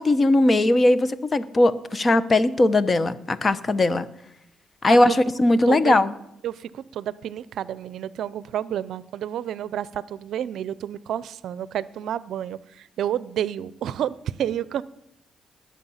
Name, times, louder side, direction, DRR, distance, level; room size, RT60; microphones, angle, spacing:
voice 1, 0.0-4.1 4.8-6.1, left 2 dB, 35° left, 14 dB, 1.0 m, -19 dB
voice 2, 5.7-6.0 6.4-14.8, right 10 dB, 75° right, 18 dB, 0.5 m, -30 dB
20.0 x 7.4 x 5.7 m, 0.79 s
cardioid pair, 70°, 0 cm